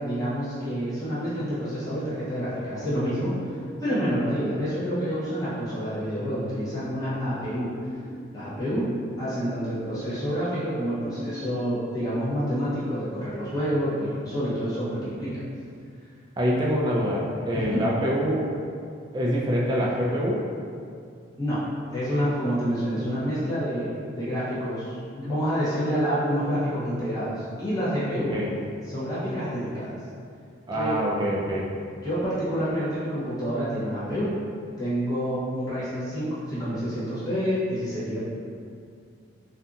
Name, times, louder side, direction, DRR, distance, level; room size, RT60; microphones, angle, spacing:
voice 1, 0.0-3.3 3.8-7.7 8.3-8.9 9.2-15.4 17.5-17.9 21.4-21.6 21.9-28.4 28.8-29.9 30.7-31.0 32.0-34.3 34.8-38.2, equal, 20° left, -12 dB, 0.7 m, -28 dB
sound 1, 1.1-13.0, left 2 dB, 60° left, 0.5 m, -45 dB
voice 2, 16.4-18.5 19.1-20.4 28.3-28.5 30.7-31.7, equal, 20° right, -4 dB, 0.3 m, -25 dB
2.7 x 2.5 x 2.4 m, 2.3 s
head